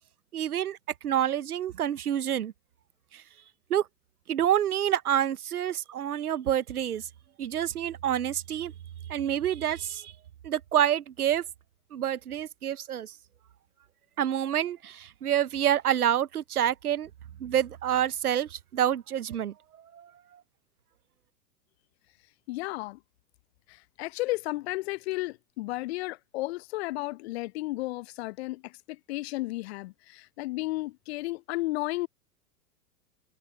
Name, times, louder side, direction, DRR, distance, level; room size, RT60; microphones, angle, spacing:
voice 1, 0.3-0.8 1.0-2.5 3.1-3.2 3.7-3.9 4.3-7.1 7.4-8.7 9.1-10.1 10.4-11.4 11.9-13.1 14.2-17.1 17.4-19.5 19.9-20.1, right 10 dB, 70° right, 1.0 m, -27 dB
voice 2, 22.5-23.0 23.7-32.1, left 20 dB, 40° left, 0.9 m, -33 dB
figure-of-eight pair, 100°, 47 cm